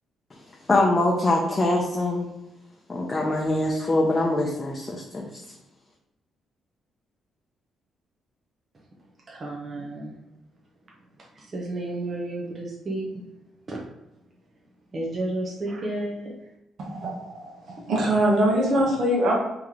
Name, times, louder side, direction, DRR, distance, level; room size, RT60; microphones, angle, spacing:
voice 1, 0.7-2.3 2.9-5.3, left 2 dB, 25° left, -1 dB, 0.6 m, -23 dB
voice 2, 9.3-10.1 11.5-13.2 13.7-13.8 14.9-16.3, right 2 dB, 35° right, -2 dB, 0.7 m, -31 dB
voice 3, 16.8-19.3, right 1 dB, 65° right, -3 dB, 0.9 m, -23 dB
3.1 x 2.9 x 3.7 m, 0.95 s
cardioid pair, 90°, 0 cm